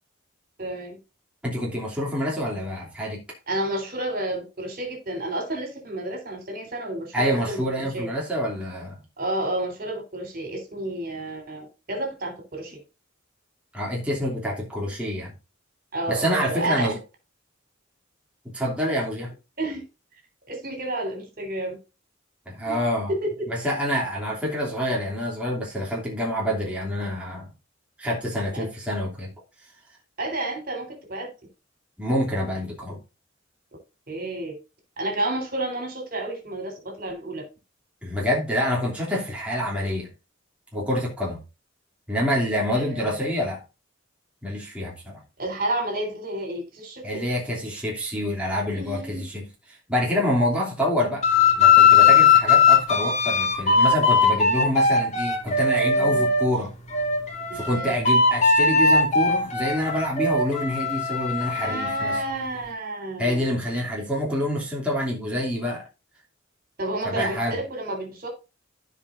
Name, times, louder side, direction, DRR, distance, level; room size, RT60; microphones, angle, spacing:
voice 1, 0.6-1.0 3.5-8.1 9.2-12.8 15.9-16.9 19.6-19.8 20.5-21.8 22.7-22.8 23.1-23.5 28.5-28.7 30.2-31.3 34.1-34.6 35.0-37.4 42.7-43.3 45.4-47.2 48.7-49.2 56.0-56.3 57.5-58.0 61.5-63.4 66.8-68.3, right 1 dB, 50° right, 3.7 m, -30 dB
voice 2, 1.4-3.2 7.1-9.0 13.7-15.3 16.1-17.0 18.5-19.3 22.5-23.1 23.5-27.5 28.0-29.3 32.0-33.0 38.0-40.1 40.7-41.4 42.1-43.6 44.4-45.2 47.0-51.2 51.6-56.7 57.5-62.2 63.2-65.8 67.0-67.6, equal, 5° right, 2.8 m, -27 dB
sound 1, 51.2-56.5 56.9-62.2, left 5 dB, 35° left, 2.2 m, -19 dB
15.5 x 5.3 x 2.6 m
head